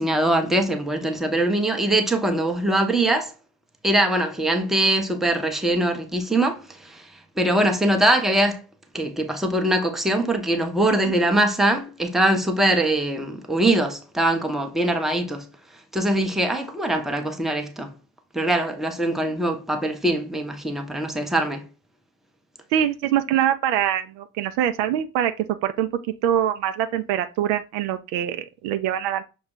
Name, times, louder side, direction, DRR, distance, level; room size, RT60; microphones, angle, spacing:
voice 1, 0.0-3.3 3.8-7.1 7.4-8.6 8.9-15.5 15.9-17.9 18.3-21.7, right 1 dB, ahead, 0.7 m, -22 dB
voice 2, 22.7-25.9 26.2-29.2, right 10 dB, 65° right, 0.5 m, -24 dB
5.8 x 2.3 x 3.6 m
figure-of-eight pair, 50°, 46 cm